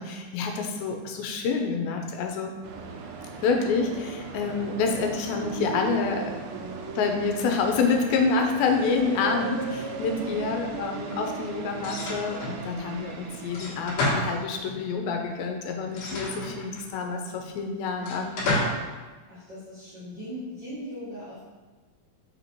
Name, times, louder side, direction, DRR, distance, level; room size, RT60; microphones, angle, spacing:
voice 1, 0.0-2.5 3.4-6.3 7.0-18.4, left 4 dB, 90° left, 3 dB, 2.6 m, -27 dB
sound 1, 2.6-13.8, right 5 dB, 80° right, 2.2 m, -37 dB
sound 2, 11.8-12.6 13.5-14.8 15.9-17.0 18.0-18.9, left 1 dB, 65° left, 2.7 m, -30 dB
voice 2, 19.2-21.4, equal, 45° right, -11 dB, 1.5 m, -39 dB
5.4 x 4.2 x 4.5 m, 1.3 s
omnidirectional pair, 4.1 m